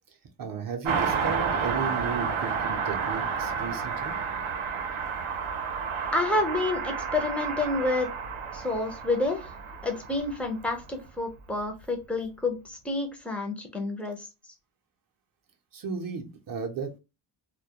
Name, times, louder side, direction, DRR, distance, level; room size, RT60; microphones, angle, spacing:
voice 1, 0.4-4.1 15.7-17.0, right 6 dB, 45° right, 4 dB, 0.5 m, -34 dB
Car passing by, 0.8-10.8 11.1-11.2, right 6 dB, 90° right, 0.7 m, -31 dB
voice 2, 6.1-8.1 8.5-9.5 9.8-14.2, left 2 dB, 5° left, 4 dB, 0.3 m, -29 dB
2.2 x 2.1 x 2.8 m, 0.27 s
wide cardioid pair, 145°, 48 cm